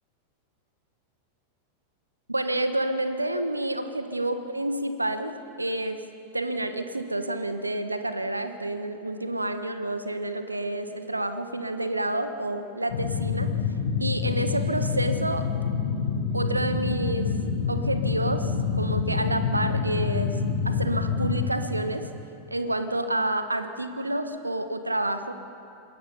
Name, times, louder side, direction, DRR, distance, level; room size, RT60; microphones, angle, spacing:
voice 1, 2.3-6.0 6.3-13.5 14.0-15.5 16.3-17.3 17.7-20.4 20.6-22.1 22.5-25.3, right 1 dB, 85° right, 9 dB, 1.2 m, -29 dB
sound 1, 12.9-21.5, left 5 dB, 55° left, 3.8 m, -27 dB
26.5 x 19.5 x 5.5 m, 2.7 s
figure-of-eight pair, 90°, 0 cm